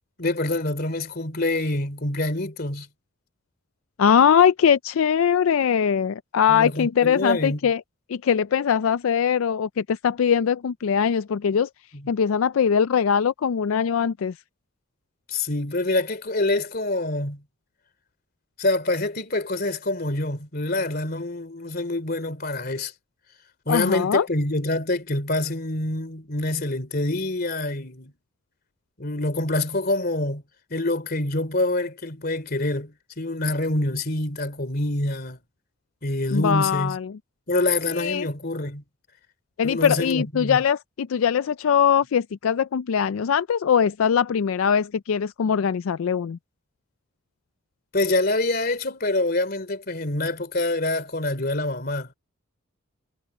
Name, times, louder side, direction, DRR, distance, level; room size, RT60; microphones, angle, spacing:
voice 1, 0.2-2.9 6.5-7.6 15.3-17.4 18.6-22.9 23.6-28.1 29.0-30.4 30.7-35.4 36.0-37.0 37.5-38.8 39.6-40.6 47.9-52.1, left 2 dB, 45° left, 3.1 m, -26 dB
voice 2, 4.0-7.8 8.1-11.7 12.1-14.4 23.7-24.3 36.3-37.2 37.9-38.3 39.6-46.4, left 7 dB, 80° left, 0.4 m, -21 dB
head